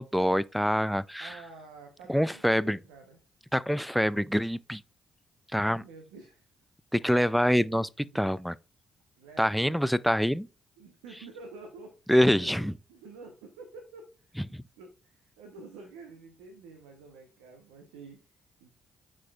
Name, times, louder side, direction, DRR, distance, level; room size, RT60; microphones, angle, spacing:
voice 1, 0.0-1.4 2.1-2.8 3.5-4.8 5.5-5.8 6.9-7.9 8.2-8.6 9.4-10.5 12.1-12.7 14.5-14.6, equal, ahead, 0.3 m, -25 dB
voice 2, 1.2-3.2 5.6-6.5 7.7-8.3 9.2-10.0 10.8-12.0 12.4-14.3 14.8-18.7, right 3 dB, 85° right, 0.9 m, -49 dB
8.2 x 4.9 x 2.3 m
hypercardioid pair, 45°, 0 cm